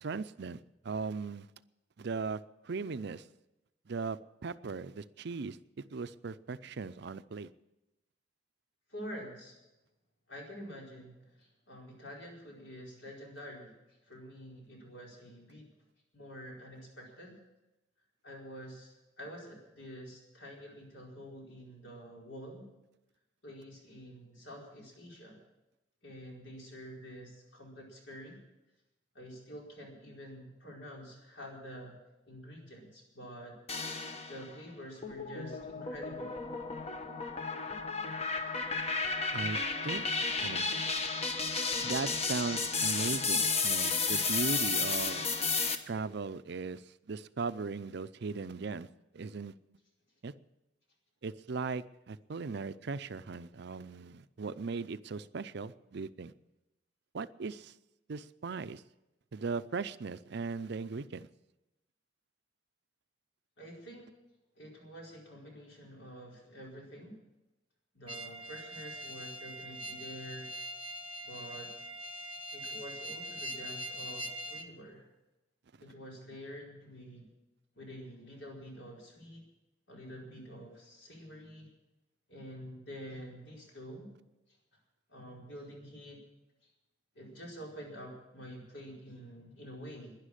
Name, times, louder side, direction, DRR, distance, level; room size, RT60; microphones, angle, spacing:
voice 1, 0.0-1.5 2.0-3.2 3.9-7.5 39.3-39.6 39.8-40.0 40.4-40.7 41.8-45.2 45.9-46.8 47.1-48.9 49.1-49.5 50.2-50.3 51.2-56.3 57.1-57.7 58.1-58.8 59.3-61.3, right 4 dB, 65° right, 14 dB, 0.5 m, -38 dB
voice 2, 8.9-9.6 10.3-13.7 14.0-15.7 16.1-17.4 18.2-22.7 23.4-25.4 26.0-28.4 29.1-32.0 32.3-33.6 34.3-36.3 63.6-64.1 64.5-67.2 67.9-70.5 71.2-71.7 72.5-75.0 75.8-77.3 77.7-79.4 79.9-81.7 82.3-84.1 85.1-86.2 87.1-90.2, equal, 75° left, -2 dB, 4.8 m, -48 dB
sound 1, 33.7-34.5 35.0-45.7, left 4 dB, 35° left, 1.0 m, -33 dB
sound 2, 68.1-74.7, equal, 30° right, 0.9 m, -42 dB
11.5 x 10.5 x 9.9 m, 0.96 s
head